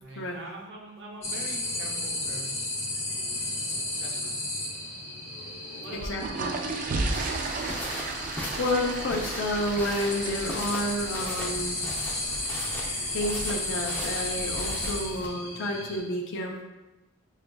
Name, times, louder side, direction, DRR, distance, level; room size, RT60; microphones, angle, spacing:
voice 1, 0.0-2.7 4.0-4.4 5.8-6.3, right 2 dB, 60° right, -1 dB, 0.8 m, -43 dB
sound 1, 1.2-16.0, left 2 dB, 35° left, 0.9 m, -34 dB
voice 2, 5.3-6.6 8.3-11.8 13.1-16.6, left 1 dB, 60° left, 0 dB, 0.5 m, -31 dB
sound 2, 5.9-15.0, right 3 dB, 40° right, 0.3 m, -35 dB
sound 3, 7.1-15.3, equal, 10° left, 0.6 m, -39 dB
6.0 x 2.4 x 2.2 m, 1.1 s
head